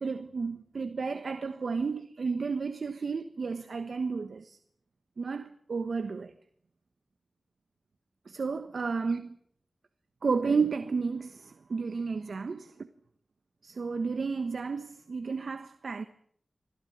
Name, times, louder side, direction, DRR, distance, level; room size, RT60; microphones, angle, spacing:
voice 1, 0.0-4.6 5.2-6.3 8.3-9.4 10.2-12.9 13.6-16.0, right 4 dB, 75° right, 1.2 m, -32 dB
25.5 x 16.5 x 9.3 m
wide cardioid pair, 100°, 0 cm